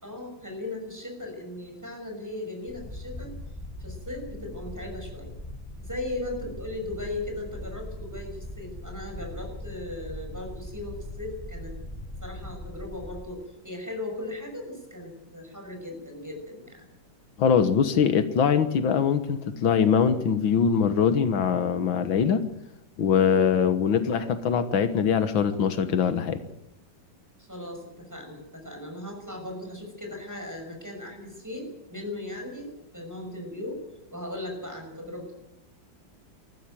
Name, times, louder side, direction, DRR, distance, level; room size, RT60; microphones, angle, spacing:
voice 1, 0.0-3.3 3.8-5.3 5.8-11.7 12.2-13.4 13.6-16.9 27.4-33.8 34.1-35.4, left 1 dB, 10° right, 2 dB, 6.1 m, -37 dB
sound 1, 2.7-13.2, left 1 dB, 10° left, 7.6 m, -40 dB
voice 2, 17.4-22.4 23.0-26.4, left 7 dB, 90° left, 11 dB, 2.1 m, -22 dB
19.5 x 14.5 x 9.2 m, 0.86 s
omnidirectional pair, 2.1 m